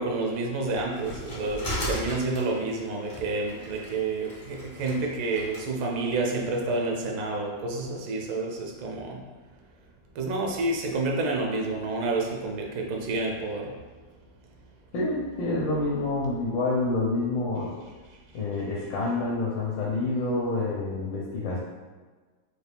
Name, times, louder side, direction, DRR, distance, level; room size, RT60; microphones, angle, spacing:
voice 1, 0.0-9.2 10.2-13.7, right 2 dB, 85° right, 1 dB, 1.4 m, -29 dB
sound 1, 0.7-5.6, equal, 55° left, 0.4 m, -37 dB
voice 2, 14.9-17.7 18.3-21.6, left 2 dB, 80° left, -4 dB, 1.4 m, -28 dB
4.4 x 2.4 x 3.3 m, 1.4 s
omnidirectional pair, 2.1 m